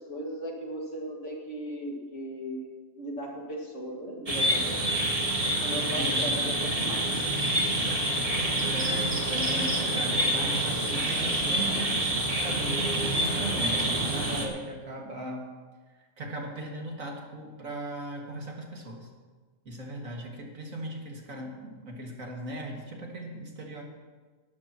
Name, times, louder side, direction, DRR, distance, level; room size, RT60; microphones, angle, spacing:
voice 1, 0.1-2.7 3.0-4.7 5.6-6.5 6.8-7.2, equal, 60° left, -1 dB, 2.3 m, -37 dB
sound 1, 4.3-14.5, right 1 dB, 25° right, 1.6 m, -27 dB
voice 2, 5.9-7.0 8.6-12.1 12.4-15.4 16.2-19.1 19.7-23.8, right 1 dB, 70° right, 0 dB, 2.5 m, -38 dB
19.5 x 12.0 x 3.0 m, 1.4 s
omnidirectional pair, 1.4 m